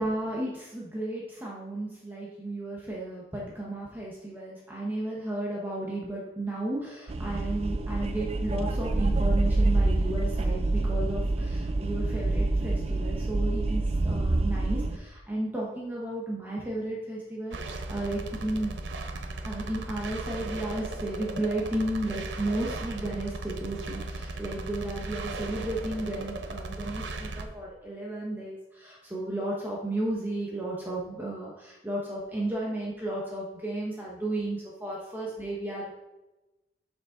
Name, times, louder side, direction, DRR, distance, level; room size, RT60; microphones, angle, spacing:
voice 1, 0.0-18.8 19.4-35.9, right 1 dB, 10° right, -4 dB, 0.9 m, -33 dB
sound 1, 7.1-15.0, right 2 dB, 35° right, 0.4 m, -26 dB
sound 2, 17.5-27.5, right 2 dB, 90° right, 0.7 m, -37 dB
6.8 x 5.2 x 3.8 m, 1.0 s
head